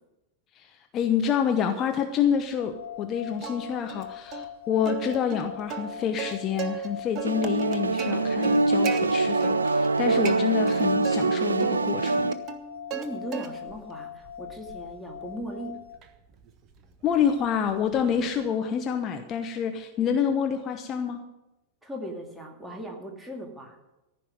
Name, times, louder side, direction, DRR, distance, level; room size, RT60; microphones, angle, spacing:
voice 1, 0.5-12.3 17.0-21.2, left 7 dB, 30° left, 6 dB, 0.9 m, -27 dB
sound 1, 2.6-16.0, left 10 dB, 70° left, 0.8 m, -42 dB
Plucked string instrument, 3.4-4.0 4.3-4.5 4.9-6.9 7.2-9.0 9.4-9.9 10.2-11.2 11.6-13.1 13.3-13.8 14.2-18.5, right 8 dB, 35° right, 1.2 m, -37 dB
sound 2, 7.2-12.3, right 3 dB, 75° right, 0.4 m, -24 dB
voice 2, 12.9-15.8 21.8-23.8, equal, 5° right, 1 dB, 2.3 m, -38 dB
14.5 x 5.8 x 9.5 m, 0.98 s
figure-of-eight pair, 90°, 0 cm